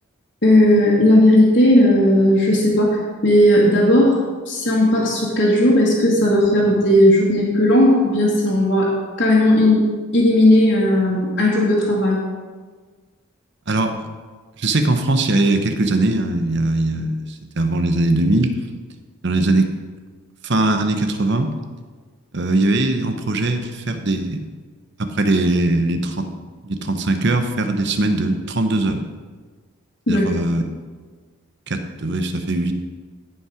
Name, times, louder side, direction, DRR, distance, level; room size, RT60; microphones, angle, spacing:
voice 1, 0.4-4.2 4.5-8.9 9.2-9.9 10.1-12.2 30.1-30.3, left 1 dB, 50° left, -7 dB, 2.0 m, -15 dB
voice 2, 13.7-14.0 14.6-17.3 17.6-18.5 19.2-19.7 20.4-21.5 22.3-24.5 25.0-26.3 26.6-29.0 30.1-30.6 31.7-32.7, right 2 dB, 55° right, 7 dB, 0.9 m, -20 dB
15.0 x 5.6 x 5.0 m, 1.4 s
head